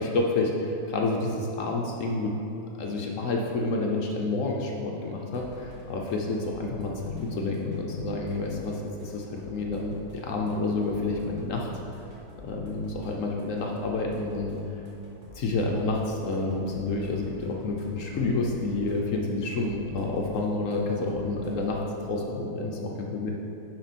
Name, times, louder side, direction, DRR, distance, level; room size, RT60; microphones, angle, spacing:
voice 1, 0.0-2.3 2.8-11.7 12.4-14.6 15.3-21.8 22.1-23.3, left 3 dB, 65° left, 0 dB, 0.8 m, -29 dB
sound 1, 5.3-21.7, equal, 70° right, 2.1 m, -48 dB
11.0 x 4.4 x 4.2 m, 2.8 s
omnidirectional pair, 2.2 m